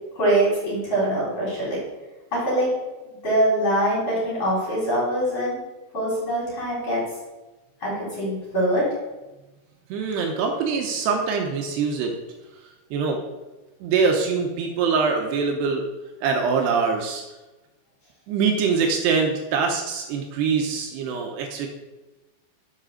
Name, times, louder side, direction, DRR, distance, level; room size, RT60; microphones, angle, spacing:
voice 1, 0.2-1.8 2.3-2.7 3.1-5.6 5.9-7.0 7.8-8.9, right 1 dB, 30° left, -6 dB, 4.3 m, -23 dB
voice 2, 9.9-12.1 12.9-13.2 13.8-15.8 16.2-17.2 18.3-21.7, right 5 dB, 80° right, 2 dB, 2.5 m, -23 dB
7.5 x 7.2 x 6.4 m, 1.1 s
omnidirectional pair, 5.8 m